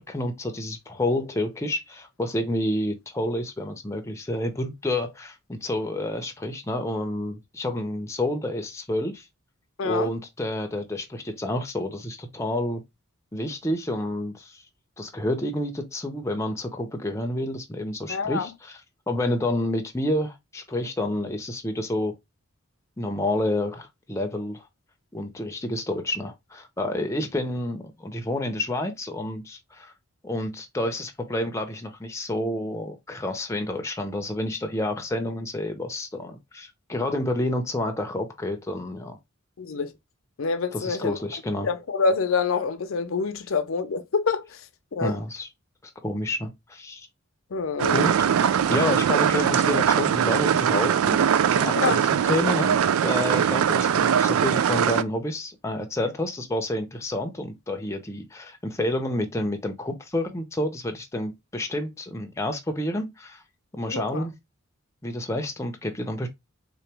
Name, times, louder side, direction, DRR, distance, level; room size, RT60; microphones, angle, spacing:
voice 1, 0.0-9.2 9.8-12.8 13.3-14.6 15.0-18.8 19.1-22.1 23.0-24.7 25.1-29.9 30.2-39.2 40.7-41.7 45.0-45.5 46.0-47.1 47.9-48.1 48.7-51.2 51.5-52.7 53.0-63.4 63.7-64.3 65.0-66.3, left 1 dB, 15° left, 0.5 m, -29 dB
voice 2, 9.8-10.1 18.1-18.5 39.6-39.9 40.4-41.2 41.6-44.6 44.9-45.2 47.5-48.1 51.8-52.0 63.9-64.3, left 4 dB, 70° left, 0.5 m, -26 dB
sound 1, 47.8-55.0, right 8 dB, 85° right, 0.3 m, -21 dB
3.7 x 2.9 x 3.3 m
head